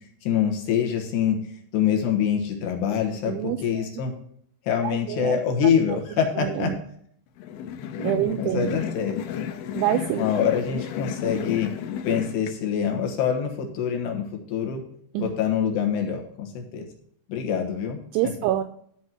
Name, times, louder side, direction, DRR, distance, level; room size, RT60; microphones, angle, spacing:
voice 1, 0.2-1.4 1.7-4.1 4.7-6.7 8.1-9.2 10.2-11.7 12.0-14.8 15.2-16.9 17.3-18.0, left 8 dB, 70° left, 2 dB, 3.2 m, -25 dB
voice 2, 3.3-3.9 4.8-6.0 6.4-6.8 8.0-8.8 9.8-10.3 15.1-15.3 18.1-18.6, right 12 dB, 90° right, 7 dB, 2.3 m, -27 dB
sound 1, 7.4-12.5, left 9 dB, 90° left, 3.0 m, -33 dB
12.5 x 4.2 x 6.0 m, 0.67 s
omnidirectional pair, 5.3 m